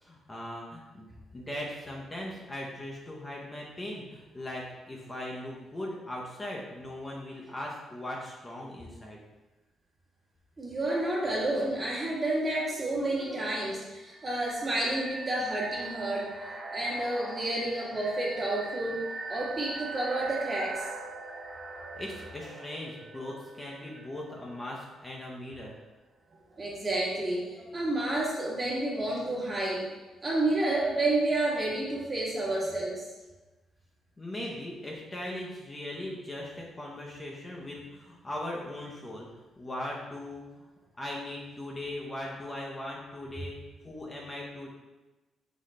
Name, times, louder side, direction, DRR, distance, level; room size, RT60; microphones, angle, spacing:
voice 1, 0.0-9.2 21.9-25.7 34.2-39.3 39.6-40.4 41.0-43.6 43.8-44.7, left 1 dB, 20° left, -3 dB, 0.8 m, -39 dB
voice 2, 10.6-16.3 16.7-20.8 26.6-29.9 30.2-33.1, right 2 dB, 30° right, -5 dB, 1.5 m, -30 dB
sound 1, 14.1-24.8, right 3 dB, 10° right, 0.7 m, -41 dB
4.1 x 3.9 x 3.2 m, 1.1 s
cardioid pair, 90°, 0 cm